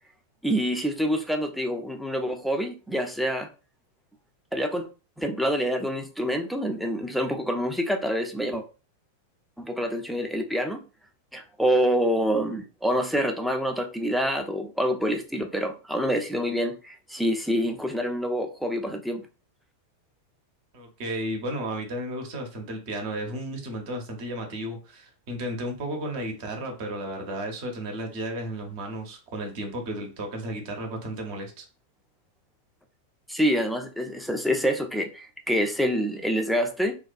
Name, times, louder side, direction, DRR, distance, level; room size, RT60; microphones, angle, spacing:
voice 1, 0.4-3.5 4.5-4.9 5.2-8.6 9.6-10.8 11.3-19.2 33.3-37.0, equal, ahead, 3 dB, 0.4 m, -26 dB
voice 2, 20.7-31.6, right 1 dB, 50° right, 3 dB, 0.7 m, -33 dB
2.3 x 2.2 x 2.5 m, 0.33 s
figure-of-eight pair, 90°, 0 cm